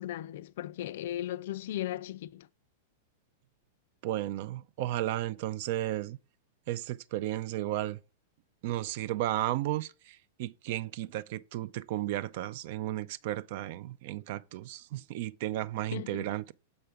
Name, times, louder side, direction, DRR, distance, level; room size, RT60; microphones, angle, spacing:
voice 1, 0.0-2.5 15.9-16.3, left 13 dB, 60° left, 0.3 m, -37 dB
voice 2, 4.0-6.2 6.7-8.0 8.6-16.5, right 14 dB, 55° right, 0.3 m, -34 dB
6.7 x 5.5 x 3.3 m
figure-of-eight pair, 100°, 0 cm